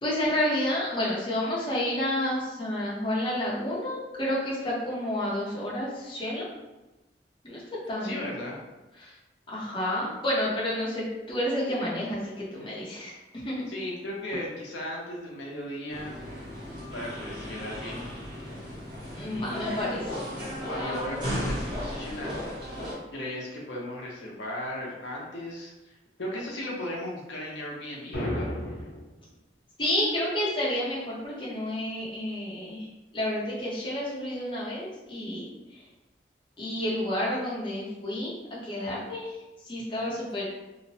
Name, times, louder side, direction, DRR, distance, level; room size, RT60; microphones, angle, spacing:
voice 1, 0.0-6.5 7.4-7.6 7.9-8.2 9.0-9.1 9.5-13.6 19.2-20.3 29.8-32.9 33.1-35.5 35.7-35.8 36.6-38.4 38.6-39.3 39.7-40.4, left 1 dB, 30° left, -6 dB, 0.7 m, -30 dB
voice 2, 8.0-8.6 13.7-16.1 16.9-18.0 19.3-20.1 20.6-22.3 22.7-25.9 26.2-28.8 39.9-40.1, left 1 dB, 90° left, -3 dB, 0.6 m, -36 dB
sound 1, 15.9-22.9, equal, 25° right, 0.9 m, -35 dB
sound 2, 28.1-29.1, equal, 65° left, 0.9 m, -32 dB
2.8 x 2.1 x 2.7 m, 1.0 s
head